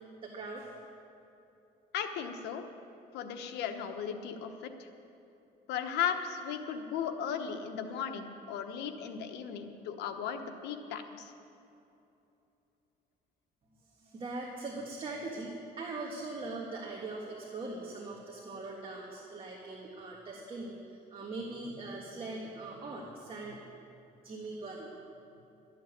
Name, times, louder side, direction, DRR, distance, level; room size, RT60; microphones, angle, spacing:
voice 1, 0.2-0.7 14.0-23.6 24.2-24.9, right 2 dB, 30° right, -2 dB, 1.7 m, -41 dB
voice 2, 1.9-2.6 3.1-4.9 5.7-11.3, left 8 dB, 85° left, 6 dB, 1.1 m, -36 dB
13.0 x 7.2 x 9.6 m, 2.8 s
cardioid pair, 110°, 17 cm